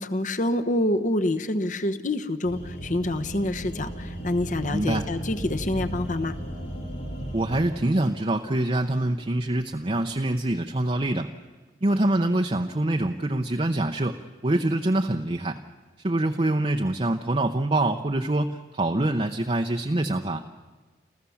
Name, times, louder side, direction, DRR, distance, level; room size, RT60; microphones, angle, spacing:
voice 1, 0.0-6.4, left 1 dB, 45° left, 9 dB, 1.1 m, -27 dB
sound 1, 2.4-7.7, right 1 dB, 85° left, 6.8 m, -35 dB
voice 2, 4.7-5.0 7.3-11.3 11.8-15.6 16.0-20.4, right 1 dB, 35° right, 3 dB, 0.7 m, -25 dB
29.0 x 14.5 x 7.2 m, 1.3 s
head